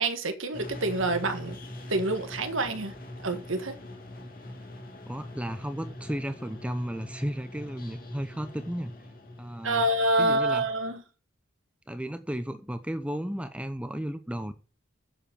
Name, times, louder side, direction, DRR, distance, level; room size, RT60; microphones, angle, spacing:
voice 1, 0.0-1.6 1.9-2.9 3.2-3.8 9.6-11.0, right 1 dB, 75° right, 1.7 m, -27 dB
sound 1, 0.5-10.9, left 1 dB, 45° left, 2.7 m, -43 dB
voice 2, 5.1-8.9 9.4-9.8 10.2-10.6 11.9-14.5, equal, 5° right, 0.7 m, -34 dB
7.7 x 7.4 x 8.5 m
head